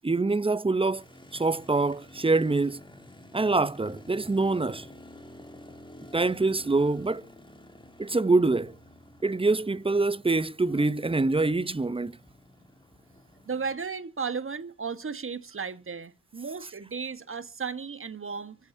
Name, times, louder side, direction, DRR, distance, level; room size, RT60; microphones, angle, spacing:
voice 1, 0.0-1.0 1.3-2.8 3.3-4.9 6.1-7.2 8.0-8.7 9.2-12.1, right 3 dB, 15° right, 0.8 m, -25 dB
Motorcycle, 0.7-13.8, left 1 dB, 15° left, 2.8 m, -51 dB
voice 2, 13.5-18.6, right 5 dB, 40° right, 1.4 m, -35 dB
24.5 x 8.5 x 2.7 m
cardioid pair, 55°, 33 cm